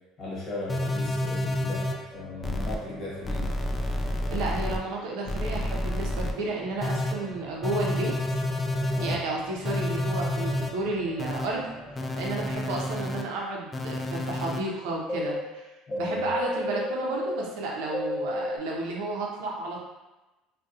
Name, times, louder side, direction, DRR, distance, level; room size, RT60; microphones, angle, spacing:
voice 1, 0.2-3.5 8.9-9.2 15.9-16.3, left 2 dB, 40° left, -6 dB, 1.1 m, -37 dB
sound 1, 0.7-1.9 2.4-2.8 3.2-4.8 5.3-6.3 6.8-7.1 7.6-9.1 9.6-10.7 11.2-11.5 12.0-13.2 13.7-14.6 15.1-15.4 15.9-17.4 17.9-18.6, left 1 dB, 20° left, 0.3 m, -29 dB
sound 2, 2.1-5.0 5.2-12.6, equal, 20° right, 0.9 m, -45 dB
voice 2, 4.3-8.2 9.0-11.7 12.2-15.7 16.0-19.8, right 2 dB, 80° right, -2 dB, 0.6 m, -32 dB
2.3 x 2.2 x 2.7 m, 1.1 s
supercardioid pair, 100°, 0 cm